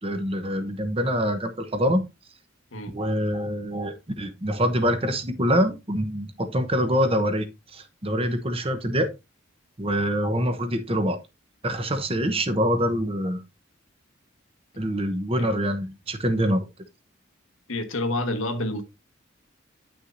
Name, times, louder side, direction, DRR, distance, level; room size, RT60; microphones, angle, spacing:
voice 1, 0.0-2.0 2.9-7.5 7.7-9.1 9.8-11.2 11.6-13.4 14.8-16.7, equal, 30° right, 1.0 m, -25 dB
voice 2, 17.7-18.8, left 1 dB, 85° left, 1.3 m, -28 dB
9.6 x 6.1 x 2.6 m
head